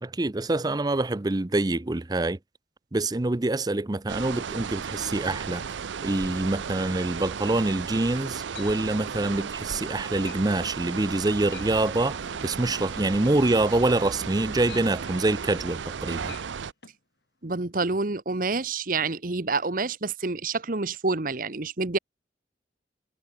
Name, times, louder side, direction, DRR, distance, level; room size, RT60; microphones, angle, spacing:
voice 1, 0.0-2.4 2.9-5.7 6.0-16.3, right 2 dB, 20° right, 0.6 m, -26 dB
sound 1, 4.1-16.7, right 6 dB, 85° right, 0.5 m, -35 dB
sound 2, 7.3-7.4 7.7-8.1 8.5-8.7 9.1-9.5 9.8-10.0 10.2-10.4 10.7-10.9 11.3-11.7 12.1-16.0 16.2-16.5 16.8-17.0, left 6 dB, 65° left, 1.8 m, -48 dB
voice 2, 17.4-22.0, right 3 dB, 50° right, 1.1 m, -28 dB
head